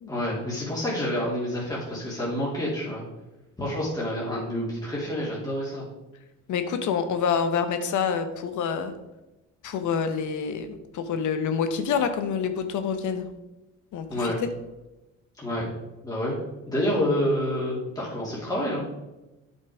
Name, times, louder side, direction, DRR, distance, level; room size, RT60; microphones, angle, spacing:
voice 1, 0.1-3.0 3.6-5.8 14.1-14.4 15.4-15.7 16.0-16.4 16.7-18.8, left 1 dB, 10° left, -6 dB, 2.8 m, -28 dB
voice 2, 6.5-8.9 9.6-13.3 13.9-14.3, left 6 dB, 75° left, 9 dB, 1.0 m, -27 dB
8.5 x 5.5 x 4.8 m, 1.0 s
cardioid pair, 90°, 30 cm